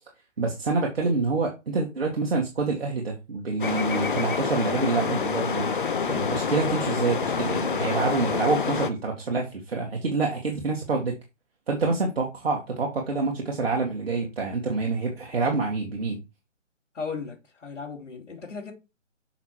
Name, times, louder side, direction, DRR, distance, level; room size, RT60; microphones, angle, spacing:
voice 1, 0.4-5.8 6.1-11.1 11.7-16.2, right 3 dB, 50° right, 2.2 m, -27 dB
sound 1, 3.6-8.9, left 5 dB, 40° left, 0.9 m, -27 dB
voice 2, 16.9-18.7, left 5 dB, 65° left, 3.2 m, -36 dB
6.5 x 6.0 x 4.7 m
figure-of-eight pair, 155°, 38 cm